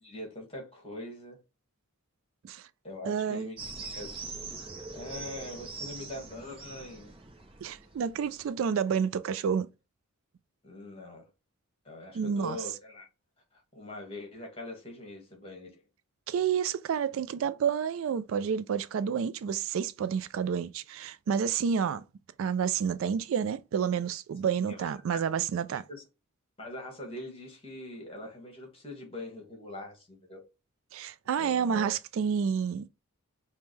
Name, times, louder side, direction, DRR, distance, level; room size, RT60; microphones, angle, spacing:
voice 1, 0.0-1.4 2.8-4.3 4.9-7.1 10.6-11.3 11.8-13.1 13.5-15.8 24.6-25.2 25.7-26.0 26.6-30.4 31.4-32.0, left 1 dB, 25° left, 1.6 m, -43 dB
voice 2, 3.0-3.5 7.6-9.7 12.1-12.6 16.3-22.0 22.4-25.8 30.9-32.9, right 7 dB, 65° right, 0.3 m, -29 dB
sound 1, 3.6-8.4, right 3 dB, 25° right, 0.6 m, -42 dB
5.1 x 2.2 x 3.2 m
head